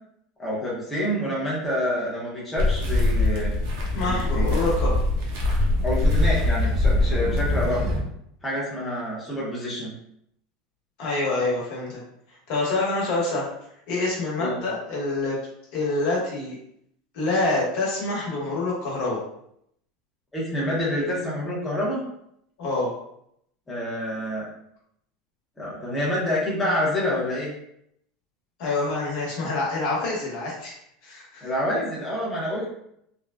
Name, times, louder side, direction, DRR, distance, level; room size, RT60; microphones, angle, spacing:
voice 1, 0.4-3.5 4.0-4.6 5.8-7.8 8.4-9.9 14.4-14.6 20.3-22.0 23.7-24.5 25.6-27.5 31.4-32.7, left 1 dB, 10° left, -7 dB, 0.8 m, -27 dB
sound 1, 2.6-8.0, left 2 dB, 65° right, 0.7 m, -22 dB
voice 2, 3.9-4.9 11.0-12.0 12.5-13.5 13.9-15.4 15.7-16.6 17.1-19.2 22.6-22.9 28.6-30.7 31.0-31.5, left 2 dB, 60° left, -4 dB, 1.2 m, -26 dB
3.5 x 2.2 x 2.3 m, 0.73 s
supercardioid pair, 155°, 0 cm